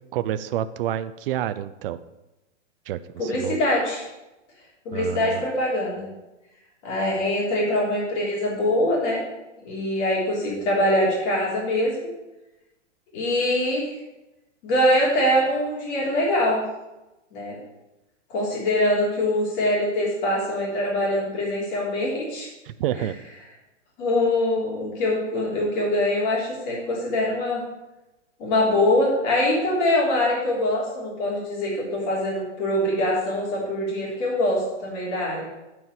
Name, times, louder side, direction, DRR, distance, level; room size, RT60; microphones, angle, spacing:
voice 1, 0.1-2.0 2.9-3.6 4.9-5.5 22.7-23.1, right 11 dB, 50° right, 14 dB, 0.6 m, -28 dB
voice 2, 3.2-4.1 4.8-6.1 6.8-9.2 9.6-11.9 13.1-13.9 14.6-16.6 17.3-17.6 18.3-22.5 22.9-23.0 24.0-27.6 28.4-35.5, left 1 dB, 40° left, -4 dB, 3.3 m, -23 dB
9.4 x 4.7 x 6.8 m, 0.99 s
hypercardioid pair, 140°, 36 cm